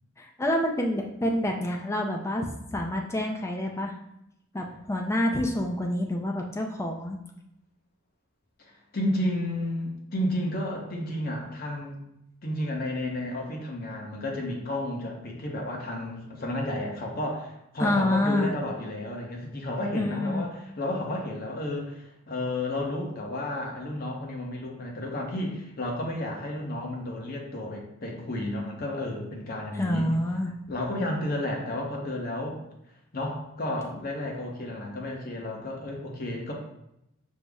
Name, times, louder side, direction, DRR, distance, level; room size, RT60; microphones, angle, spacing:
voice 1, 0.2-3.9 4.5-7.2 17.8-18.6 19.9-20.5 29.7-30.5, left 1 dB, 15° left, 1 dB, 0.3 m, -27 dB
voice 2, 8.6-12.0 12.4-30.1 30.7-32.6 33.1-36.5, left 1 dB, 45° left, 0 dB, 0.8 m, -32 dB
5.3 x 2.0 x 3.4 m, 0.83 s
head